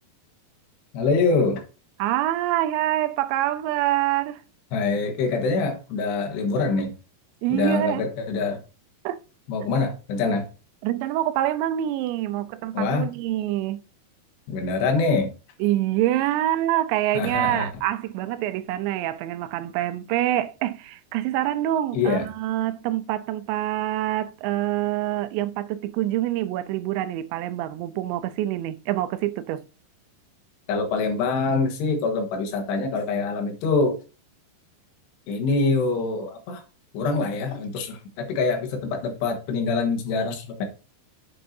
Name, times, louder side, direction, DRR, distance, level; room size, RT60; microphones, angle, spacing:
voice 1, 0.9-1.6 4.7-7.0 7.5-8.6 9.5-10.5 12.7-13.1 14.5-15.3 17.2-17.7 21.9-22.3 30.7-34.0 35.3-36.6 36.9-38.0 38.3-40.6, left 4 dB, 75° left, 3.5 m, -24 dB
voice 2, 2.0-4.4 7.4-8.1 9.0-9.2 10.8-13.8 15.6-29.6, right 13 dB, 85° right, 2.9 m, -26 dB
8.5 x 7.9 x 2.7 m
omnidirectional pair, 5.0 m